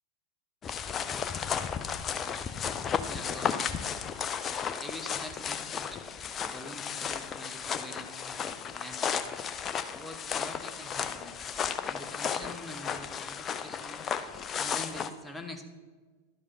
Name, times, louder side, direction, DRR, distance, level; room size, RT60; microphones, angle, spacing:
sound 1, 0.6-15.1, left 7 dB, 25° left, 0.5 m, -34 dB
voice 1, 2.8-3.8 4.8-6.0 6.4-9.2 10.0-11.4 11.8-14.1 14.6-15.6, left 1 dB, 5° left, 4 dB, 0.9 m, -45 dB
11.0 x 4.9 x 5.6 m, 1.4 s
figure-of-eight pair, 90°, 0 cm